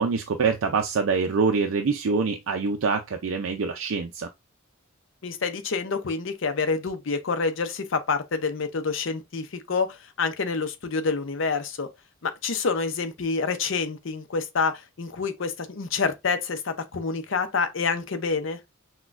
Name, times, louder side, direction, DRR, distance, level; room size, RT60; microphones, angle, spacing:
voice 1, 0.0-4.3, right 4 dB, 75° right, 0.4 m, -25 dB
voice 2, 5.2-11.9 12.2-18.6, left 4 dB, 65° left, 0.6 m, -27 dB
6.0 x 2.2 x 2.5 m
head